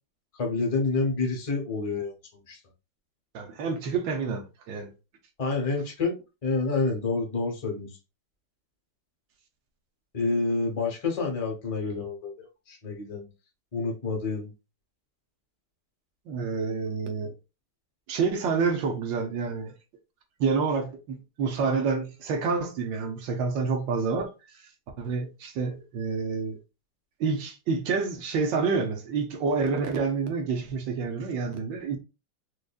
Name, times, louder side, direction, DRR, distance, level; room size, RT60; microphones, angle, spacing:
voice 1, 0.3-2.1 2.5-2.6 5.4-6.1 6.4-7.9 10.1-13.2 13.7-14.5, left 3 dB, 30° left, 0.6 m, -28 dB
voice 2, 3.3-4.9 16.3-17.3 18.1-19.7 20.4-24.3 25.0-26.6 27.2-32.0, right 5 dB, 70° right, 1.3 m, -28 dB
4.9 x 2.4 x 2.3 m
omnidirectional pair, 2.3 m